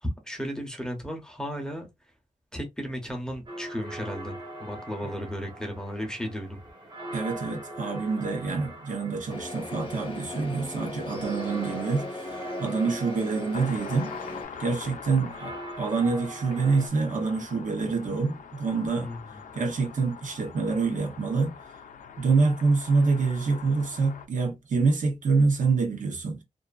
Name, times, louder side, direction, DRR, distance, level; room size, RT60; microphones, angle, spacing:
voice 1, 0.0-1.9 2.5-6.6 19.0-19.2, equal, 5° left, 0.6 m, -34 dB
sound 1, 3.5-16.9, right 1 dB, 40° right, 0.8 m, -42 dB
voice 2, 7.1-14.1 14.6-19.1 19.5-21.6 22.2-26.4, right 4 dB, 80° right, 0.7 m, -26 dB
sound 2, 9.3-14.4, left 2 dB, 40° left, 0.8 m, -38 dB
sound 3, 13.5-24.3, left 7 dB, 90° left, 0.4 m, -44 dB
2.5 x 2.4 x 2.3 m
wide cardioid pair, 170°, 13 cm